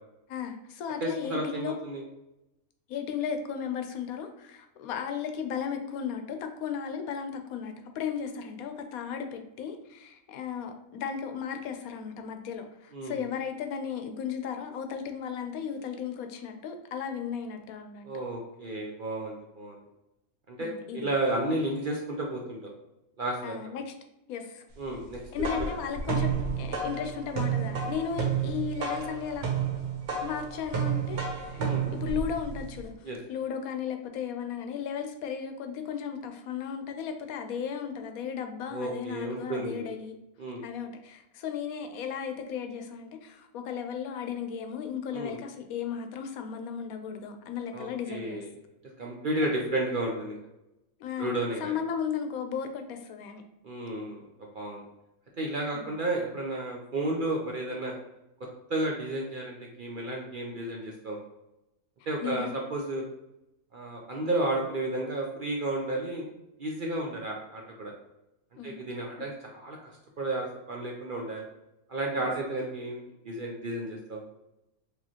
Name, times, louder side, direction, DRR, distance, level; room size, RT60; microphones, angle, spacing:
voice 1, 0.3-1.8 2.9-18.1 20.6-21.1 23.4-23.9 24.3-24.6 25.3-29.5 30.2-40.1 40.6-48.4 49.4-49.5 51.0-51.3 51.6-53.4 55.7-55.9 62.2-62.6 68.6-68.8 72.2-72.3, left 7 dB, 85° left, 6 dB, 1.1 m, -35 dB
voice 2, 1.0-2.0 12.9-13.2 18.0-19.8 20.5-22.7 23.2-23.6 24.8-25.5 31.6-31.9 33.0-33.2 38.7-39.9 40.4-40.6 45.1-45.4 47.7-48.5 49.0-50.4 51.2-51.8 53.6-54.2 54.5-54.8 55.4-57.9 58.7-61.2 62.1-63.0 63.7-66.3 66.6-67.9 68.6-69.8 70.2-71.4 71.9-74.2, right 1 dB, 55° right, -1 dB, 0.6 m, -32 dB
sound 1, 25.1-32.9, right 6 dB, 80° right, 1.4 m, -31 dB
4.9 x 3.0 x 2.8 m, 0.90 s
omnidirectional pair, 1.5 m